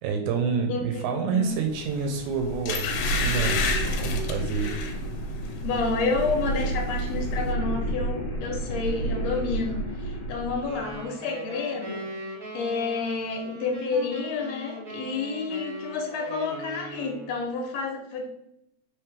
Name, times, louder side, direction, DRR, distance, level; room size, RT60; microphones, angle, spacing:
voice 1, 0.0-3.6 4.0-4.7, right 5 dB, 80° right, 4 dB, 1.9 m, -28 dB
voice 2, 0.7-1.5 5.6-12.0 12.5-18.3, left 4 dB, 70° left, 0 dB, 1.7 m, -30 dB
sound 1, 1.5-11.0, right 2 dB, 50° left, 1.5 m, -30 dB
sound 2, 2.0-2.1 2.7-5.0 5.4-5.7 6.0-6.7 7.0-7.1, left 5 dB, 90° left, 2.1 m, -30 dB
sound 3, 10.6-17.4, right 1 dB, 45° right, 1.4 m, -39 dB
4.5 x 3.5 x 3.3 m, 0.81 s
omnidirectional pair, 3.5 m